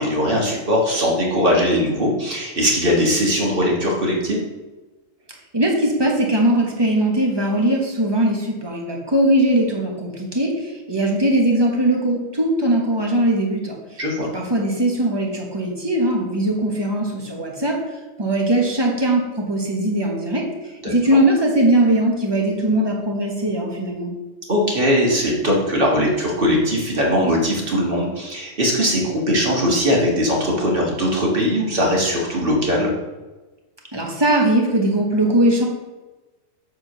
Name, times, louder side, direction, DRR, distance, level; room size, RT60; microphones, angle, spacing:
voice 1, 0.0-4.4 14.0-14.3 20.8-20.9 24.5-32.9, equal, 45° right, -2 dB, 1.8 m, -20 dB
voice 2, 5.5-13.8 14.2-17.8 18.2-20.4 20.8-24.1 33.9-35.7, right 1 dB, 20° right, 0 dB, 1.3 m, -20 dB
7.9 x 3.7 x 6.0 m, 1.2 s
omnidirectional pair, 1.4 m